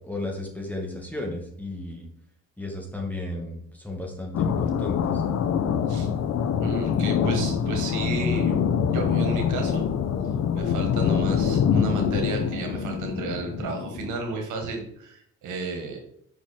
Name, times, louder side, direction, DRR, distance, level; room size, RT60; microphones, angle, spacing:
voice 1, 0.1-2.1 2.6-5.2, left 2 dB, 5° left, 0 dB, 1.9 m, -34 dB
sound 1, 4.3-14.2, left 7 dB, 60° left, 0.6 m, -25 dB
voice 2, 6.6-8.6 8.9-9.9 10.5-16.0, right 3 dB, 85° right, 2 dB, 1.7 m, -32 dB
5.7 x 4.8 x 4.3 m, 0.68 s
cardioid pair, 90°, 30 cm